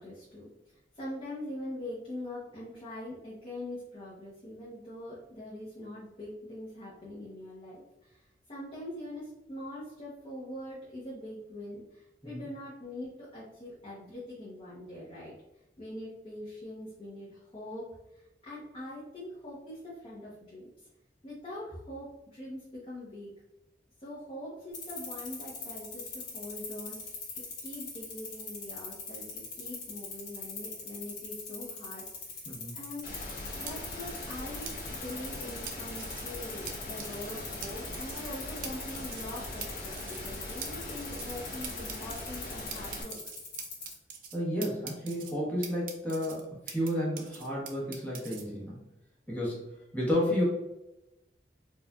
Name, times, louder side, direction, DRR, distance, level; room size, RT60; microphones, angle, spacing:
voice 1, 0.0-15.3 15.8-20.9 21.2-23.3 24.0-27.2 27.6-29.3 29.5-32.5 32.7-33.1 33.6-34.7 35.0-43.2, left 1 dB, 35° left, -8 dB, 0.8 m, -43 dB
sound 1, 24.7-43.9, left 5 dB, 85° left, 1.4 m, -41 dB
sound 2, 33.0-43.0, left 1 dB, 55° left, 1.1 m, -41 dB
sound 3, 33.7-33.8 34.7-34.8 35.7-36.2 36.7-36.8 37.0-37.3 37.6-37.7 37.9-38.3 38.6-38.7 38.9-39.3 39.6-39.7 39.9-40.3 40.6-40.7 41.0-41.4 41.6-42.2 42.7-44.4 44.6-45.3 45.6-46.9 47.2-48.4, right 7 dB, 50° right, 0.5 m, -42 dB
voice 2, 44.3-48.8 49.3-49.6 49.9-50.4, left 1 dB, 10° left, -6 dB, 1.1 m, -31 dB
4.4 x 2.4 x 2.4 m, 0.93 s
head